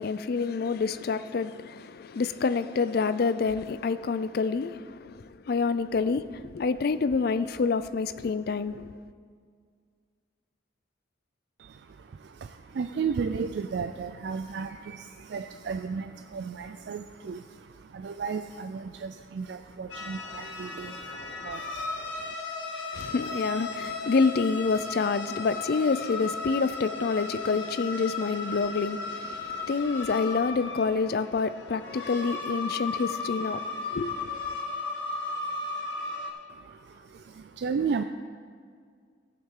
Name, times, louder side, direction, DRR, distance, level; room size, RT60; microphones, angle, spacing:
voice 1, 0.0-9.0 22.9-34.4, left 4 dB, 50° left, 0.4 m, -28 dB
voice 2, 11.6-22.4 36.5-38.0, right 5 dB, 60° right, 0.3 m, -34 dB
sound 1, 19.9-36.3, left 3 dB, 75° left, 1.6 m, -35 dB
15.5 x 8.6 x 3.8 m
head